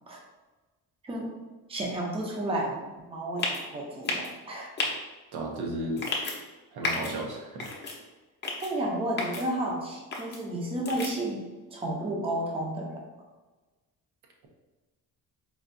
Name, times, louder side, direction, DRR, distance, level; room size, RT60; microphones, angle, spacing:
voice 1, 1.0-1.4 1.7-4.7 8.6-13.0, right 1 dB, 15° right, -1 dB, 0.5 m, -32 dB
sound 1, 3.4-3.6 4.0-4.3 4.8-4.9 6.0-6.4 6.8-7.1 7.6-8.0 8.4-8.7 9.2-9.4 10.1-10.4 10.9-11.1, left 3 dB, 30° left, 0.6 m, -31 dB
voice 2, 5.3-6.1 6.7-7.7, right 1 dB, 90° right, 0 dB, 0.8 m, -34 dB
4.3 x 2.3 x 2.5 m, 1.2 s
cardioid pair, 145°, 37 cm